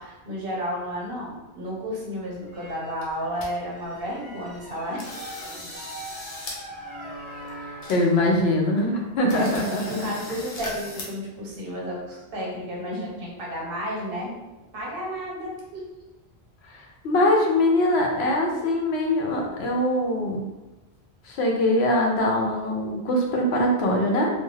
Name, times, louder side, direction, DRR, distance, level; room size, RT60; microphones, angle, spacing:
voice 1, 0.0-5.1 9.3-14.3 14.7-15.8, equal, 65° right, -3 dB, 1.0 m, -32 dB
sound 1, 2.3-3.3 3.5-8.0, right 1 dB, ahead, 0.6 m, -41 dB
sound 2, 2.7-2.8 3.0-3.5 3.9-4.0 4.5-4.7 5.0-6.6 6.9-7.0 7.5-7.6 7.8-8.4 8.8-8.9 9.3-11.0, left 1 dB, 45° left, 0.6 m, -38 dB
voice 2, 7.6-10.1 16.7-20.4 21.2-24.3, left 1 dB, 80° left, 0 dB, 0.8 m, -23 dB
2.3 x 2.2 x 3.1 m, 1.1 s
omnidirectional pair, 1.1 m